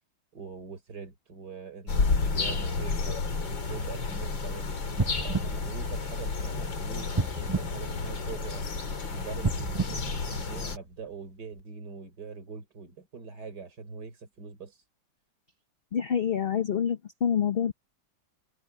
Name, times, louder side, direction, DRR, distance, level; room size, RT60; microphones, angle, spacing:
voice 1, 0.3-4.7 5.2-8.7 9.1-14.8, right 5 dB, 60° right, 4.5 m, -43 dB
sound 1, 1.9-10.8, left 4 dB, 85° left, 3.6 m, -31 dB
sound 2, 4.9-6.6 7.1-8.7 9.3-11.0 11.6-11.7, right 4 dB, 25° right, 0.5 m, -32 dB
voice 2, 15.9-17.7, left 8 dB, 45° left, 0.7 m, -27 dB
omnidirectional pair, 2.0 m